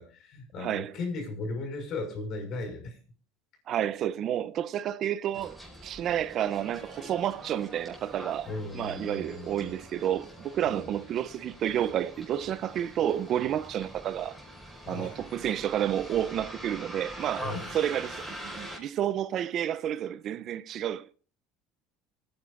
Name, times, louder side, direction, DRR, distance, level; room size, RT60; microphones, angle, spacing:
voice 1, 0.0-3.0 8.5-9.7 10.7-10.8 14.8-15.2 17.4-17.7, left 3 dB, 50° left, 5.6 m, -37 dB
voice 2, 0.6-0.9 3.7-14.4 14.9-21.1, right 10 dB, 50° right, 0.5 m, -30 dB
Bus, 5.3-18.8, right 1 dB, ahead, 5.3 m, -44 dB
25.5 x 9.6 x 2.4 m
supercardioid pair, 110°, 0 cm